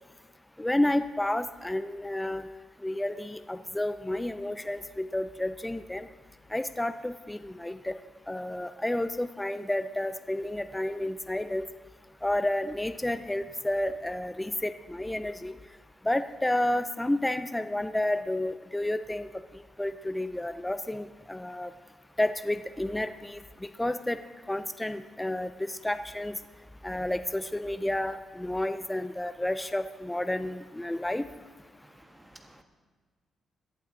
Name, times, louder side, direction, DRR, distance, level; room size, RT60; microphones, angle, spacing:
voice 1, 0.6-2.4 2.8-6.1 6.5-7.9 8.3-11.6 12.2-15.5 16.0-19.3 19.5-21.7 22.2-23.4 23.8-24.2 24.5-26.4 26.8-31.2, left 1 dB, 10° left, 11 dB, 0.4 m, -30 dB
voice 2, 31.8-32.6, right 2 dB, 20° right, 4 dB, 1.4 m, -56 dB
17.5 x 11.5 x 3.7 m, 1.5 s
cardioid pair, 120°, 0 cm